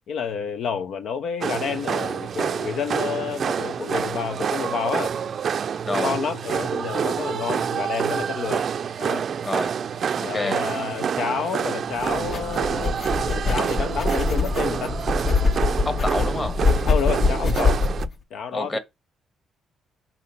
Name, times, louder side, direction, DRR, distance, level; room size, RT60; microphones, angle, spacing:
voice 1, 0.1-5.1 5.9-8.7 9.0-9.3 10.2-13.0 13.3-15.0 16.8-17.8 18.3-18.8, left 6 dB, 70° left, 0.6 m, -29 dB
sound 1, 1.4-18.1, right 7 dB, 55° right, 0.4 m, -27 dB
voice 2, 5.8-6.1 9.4-9.8 10.2-10.6 15.8-16.6 18.5-18.8, left 2 dB, 25° left, 1.5 m, -28 dB
sound 2, 12.0-18.1, left 4 dB, 50° left, 1.1 m, -24 dB
6.0 x 4.3 x 5.3 m
cardioid pair, 90°, 0 cm